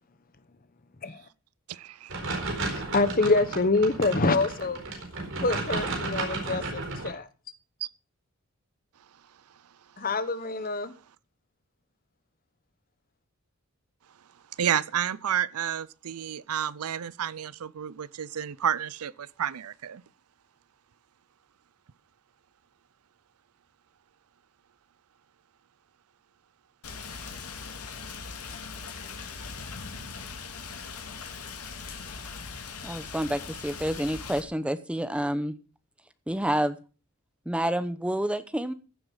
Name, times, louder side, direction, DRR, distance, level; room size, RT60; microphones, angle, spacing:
voice 1, 1.7-2.2 7.8-7.9 14.6-20.0, right 9 dB, 80° right, 0.5 m, -30 dB
sound 1, 2.1-7.1, right 3 dB, 60° right, 4.4 m, -33 dB
voice 2, 2.7-4.8 5.4-7.3 10.0-10.9, left 3 dB, 40° left, 1.1 m, -26 dB
Rain, 26.8-34.4, left 5 dB, 85° left, 2.4 m, -40 dB
voice 3, 32.8-35.5 36.3-36.8 37.5-38.7, right 1 dB, 5° right, 0.8 m, -28 dB
15.0 x 7.9 x 5.6 m
head